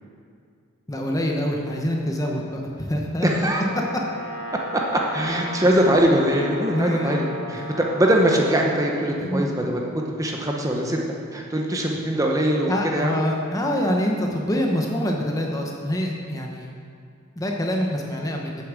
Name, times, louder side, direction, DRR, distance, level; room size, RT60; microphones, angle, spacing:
voice 1, 0.9-3.3 5.6-5.9 6.7-7.1 7.5-7.8 9.2-9.6 12.7-16.7 17.4-18.5, equal, 15° left, 0 dB, 0.8 m, -25 dB
voice 2, 3.2-3.6 4.7-9.8 10.2-11.0 11.3-13.2 18.5-18.6, right 1 dB, 15° right, 0 dB, 0.8 m, -22 dB
Brass instrument, 3.6-8.9, right 1 dB, 85° left, 1.7 m, -35 dB
8.5 x 7.1 x 7.3 m, 2.3 s
head